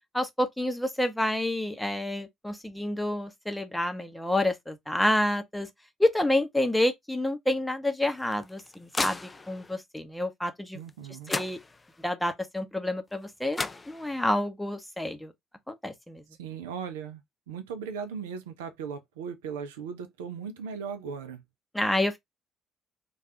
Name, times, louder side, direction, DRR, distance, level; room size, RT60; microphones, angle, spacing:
voice 1, 0.1-5.7 6.0-9.2 9.5-10.8 11.3-11.6 12.0-15.3 15.7-16.2 21.7-22.2, left 1 dB, 5° left, 0.7 m, -28 dB
sound 1, 8.1-9.7 10.9-11.0 11.3-12.1 13.2-13.3 13.5-14.4, left 3 dB, 20° left, 0.3 m, -35 dB
voice 2, 10.7-11.3 16.4-17.2 17.5-21.4, right 6 dB, 70° right, 0.4 m, -37 dB
3.2 x 2.3 x 2.8 m
figure-of-eight pair, 50°, 0 cm